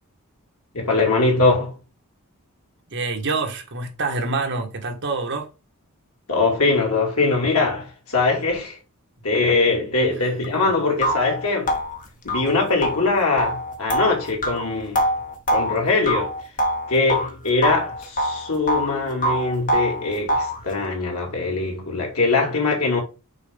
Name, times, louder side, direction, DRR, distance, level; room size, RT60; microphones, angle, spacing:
voice 1, 0.7-1.7 6.3-8.8 9.2-11.7 12.2-15.0 15.5-16.3 16.9-23.0, left 3 dB, 75° left, 2.7 m, -22 dB
voice 2, 2.9-5.5, right 3 dB, 55° right, 1.7 m, -26 dB
sound 1, 10.4-10.5 11.0-17.3 17.6-18.9 19.2-20.6, equal, 35° left, 1.2 m, -24 dB
6.3 x 4.5 x 3.7 m
head